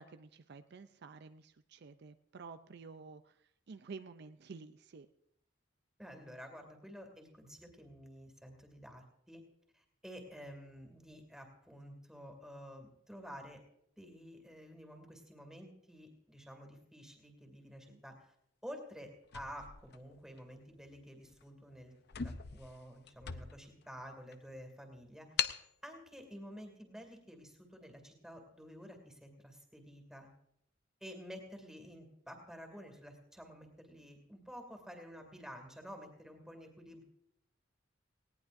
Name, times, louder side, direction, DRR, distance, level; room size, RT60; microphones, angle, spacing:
voice 1, 0.0-5.1 17.9-18.0, right 4 dB, 60° right, 10 dB, 0.5 m, -51 dB
voice 2, 6.0-9.4 9.7-13.6 14.0-18.3 18.6-21.9 22.2-30.3 31.0-37.0, equal, 5° right, 3 dB, 2.5 m, -51 dB
sound 1, 19.2-20.6 21.2-21.4 21.7-21.8 22.1-23.8 24.3-24.4 25.4-25.7, left 8 dB, 60° left, 0.6 m, -40 dB
19.0 x 17.0 x 2.6 m, 0.76 s
head